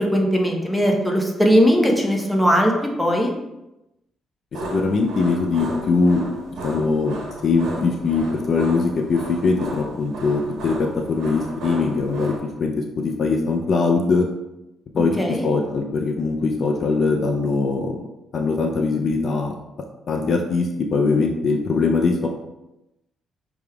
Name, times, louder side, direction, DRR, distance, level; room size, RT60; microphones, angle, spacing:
voice 1, 0.0-3.3 15.2-15.4, equal, 5° left, 0 dB, 0.8 m, -19 dB
sound 1, 4.5-12.4, right 1 dB, 80° right, 1.2 m, -33 dB
voice 2, 4.6-6.2 6.6-14.3 14.9-18.0 18.3-19.5 20.1-22.3, left 4 dB, 55° left, 3 dB, 0.4 m, -21 dB
6.0 x 3.4 x 2.3 m, 0.94 s
cardioid pair, 90°, 0 cm